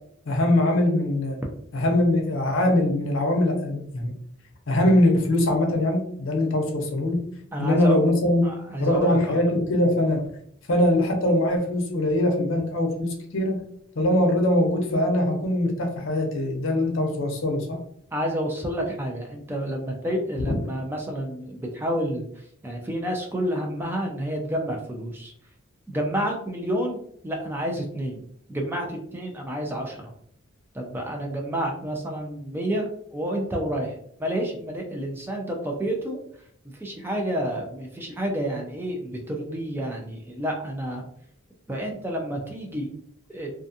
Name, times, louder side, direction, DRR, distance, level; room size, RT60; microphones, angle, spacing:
voice 1, 0.3-1.4 1.7-4.1 4.7-7.2 7.6-8.5 8.8-10.2 10.7-13.6 14.0-17.8 20.5-20.6, left 1 dB, 65° left, 2 dB, 0.6 m, -22 dB
voice 2, 7.5-8.0 8.4-9.4 18.1-25.3 25.9-27.0 27.2-28.2 28.5-30.1 30.7-33.9 34.2-36.2 36.8-41.0 41.7-42.9 43.3-43.5, right 1 dB, 10° right, 0 dB, 0.3 m, -29 dB
2.4 x 2.3 x 2.6 m, 0.67 s
head